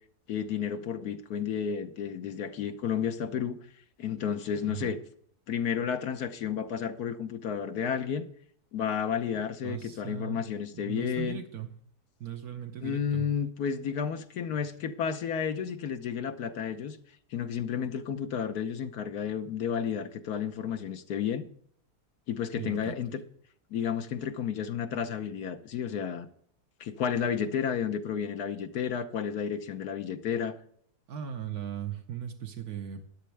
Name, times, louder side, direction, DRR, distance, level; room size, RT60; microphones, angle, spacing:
voice 1, 0.3-3.6 4.0-5.0 5.5-8.3 8.7-11.4 12.8-17.0 17.3-21.5 22.3-23.2 23.7-26.3 26.8-30.6, left 8 dB, 75° left, 1.4 m, -32 dB
voice 2, 9.6-10.5 10.7-11.7 12.2-13.3 22.6-23.1 31.1-33.0, right 9 dB, 70° right, 1.4 m, -38 dB
13.0 x 10.5 x 3.4 m
omnidirectional pair, 1.7 m